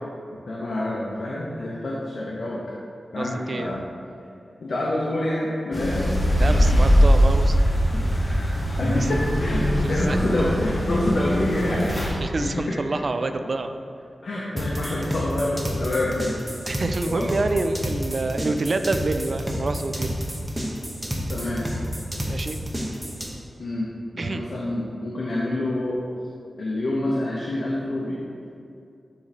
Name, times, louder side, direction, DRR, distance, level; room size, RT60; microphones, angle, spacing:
voice 1, 0.5-2.6 3.1-3.8 4.6-6.1 7.9-12.1 12.3-13.0 13.3-13.5 14.2-16.4 17.0-17.3 21.3-21.7 23.6-26.0 26.6-28.5, left 1 dB, 70° left, -5 dB, 0.7 m, -27 dB
voice 2, 3.2-3.7 6.3-7.6 8.3-8.4 8.9-9.1 9.8-10.2 12.2-13.7 16.7-20.2 22.2-22.6 24.2-24.5, right 3 dB, 50° right, 8 dB, 0.3 m, -27 dB
sound 1, 5.7-12.1, equal, 25° left, 1.1 m, -21 dB
sound 2, 14.6-23.3, equal, 15° right, 0.8 m, -30 dB
8.4 x 3.2 x 4.1 m, 2.5 s
wide cardioid pair, 115°, 0 cm